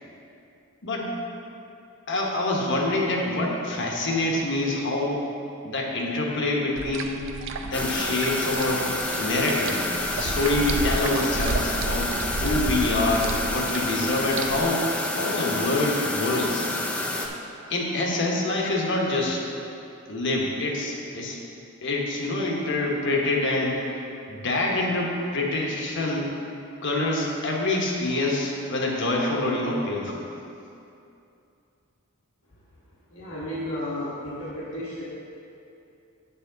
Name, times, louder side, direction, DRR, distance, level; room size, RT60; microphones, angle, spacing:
voice 1, 2.1-5.2 5.6-7.2 7.6-9.8 10.1-14.8 15.2-16.6 17.7-19.4 20.1-21.4 21.8-23.8 24.3-26.3 26.8-30.2, left 2 dB, 55° left, -1 dB, 1.2 m, -26 dB
sound 1, 6.8-14.6, right 3 dB, 60° right, 0.5 m, -32 dB
sound 2, 7.7-17.3, left 2 dB, 5° left, 0.5 m, -29 dB
voice 2, 33.1-35.0, left 1 dB, 75° left, -9 dB, 1.3 m, -33 dB
8.1 x 7.0 x 3.9 m, 2.7 s
head